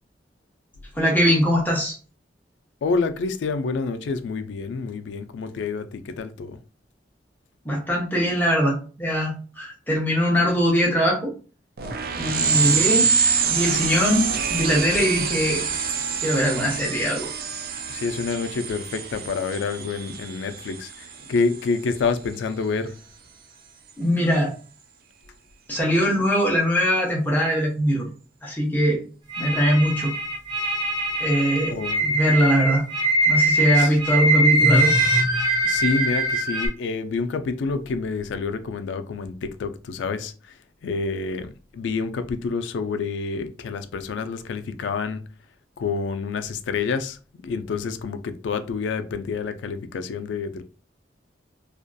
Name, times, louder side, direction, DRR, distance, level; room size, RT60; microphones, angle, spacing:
voice 1, 0.9-2.0 7.6-11.3 12.2-13.1 13.4-15.6 16.2-17.3 24.0-24.5 25.7-28.1 28.4-29.0 29.4-30.1 31.2-32.8 33.3-34.9, equal, 10° left, 0.7 m, -21 dB
voice 2, 2.8-6.6 12.6-13.1 17.9-23.0 31.6-32.4 33.8-34.0 35.6-40.3 40.8-45.2 45.8-50.6, left 4 dB, 85° left, 0.3 m, -28 dB
sound 1, 11.8-21.9, right 6 dB, 55° right, 0.3 m, -26 dB
sound 2, 29.3-36.7, right 1 dB, 20° right, 0.8 m, -22 dB
2.6 x 2.4 x 2.2 m
head